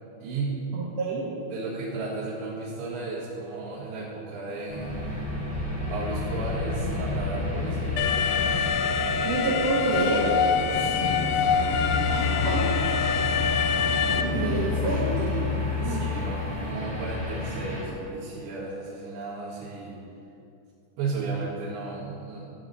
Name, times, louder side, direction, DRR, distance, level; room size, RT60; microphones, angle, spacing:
voice 1, 0.2-0.6 1.5-5.1 5.9-8.1 10.7-11.6 15.8-20.0 21.0-22.5, right 3 dB, 70° right, -10 dB, 3.8 m, -34 dB
voice 2, 0.7-1.3 9.2-10.4 12.1-12.7 13.4-14.0 14.3-16.0, right 2 dB, 90° right, -5 dB, 1.5 m, -29 dB
sound 1, 4.7-17.8, left 3 dB, 5° left, 1.4 m, -30 dB
Alarm, 8.0-14.2, left 6 dB, 85° left, 2.3 m, -25 dB
sound 2, 8.5-16.7, right 1 dB, 60° left, 1.5 m, -40 dB
13.0 x 4.9 x 8.1 m, 2.6 s
omnidirectional pair, 5.5 m